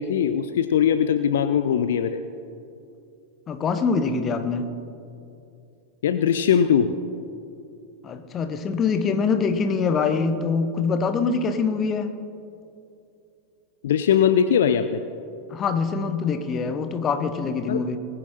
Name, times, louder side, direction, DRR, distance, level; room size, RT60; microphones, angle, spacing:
voice 1, 0.0-2.2 6.0-6.9 13.8-15.0 17.7-17.8, left 8 dB, 60° left, 11 dB, 0.4 m, -20 dB
voice 2, 3.5-4.7 8.0-12.1 15.5-18.0, left 5 dB, 25° left, 9 dB, 1.0 m, -24 dB
20.0 x 9.2 x 4.3 m, 2.6 s
figure-of-eight pair, 90°, 0 cm